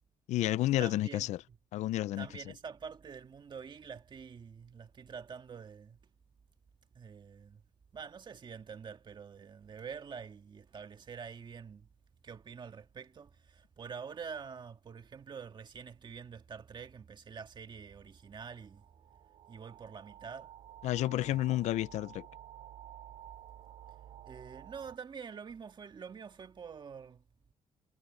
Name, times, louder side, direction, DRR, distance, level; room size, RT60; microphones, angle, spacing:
voice 1, 0.3-1.4 1.7-2.3 20.8-22.3, left 15 dB, 90° left, 0.5 m, -30 dB
voice 2, 0.8-1.6 2.2-6.0 7.0-7.6 7.9-11.9 12.2-18.9 19.5-20.5 21.3-21.4 24.2-27.2, right 6 dB, 40° right, 1.9 m, -46 dB
sound 1, 18.2-25.0, right 11 dB, 80° right, 2.5 m, -52 dB
cardioid pair, 110°, 12 cm